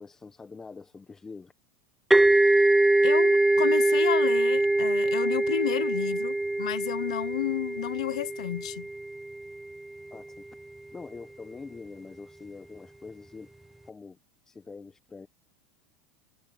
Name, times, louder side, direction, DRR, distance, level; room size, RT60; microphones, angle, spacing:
voice 1, 0.0-1.5 10.1-10.4 10.9-13.5 13.8-14.2 14.5-15.3, left 4 dB, 15° left, 1.3 m, -44 dB
sound 1, 2.1-9.6, right 2 dB, 5° right, 0.5 m, -23 dB
voice 2, 3.0-8.9, left 13 dB, 90° left, 0.7 m, -31 dB
supercardioid pair, 120°, 3 cm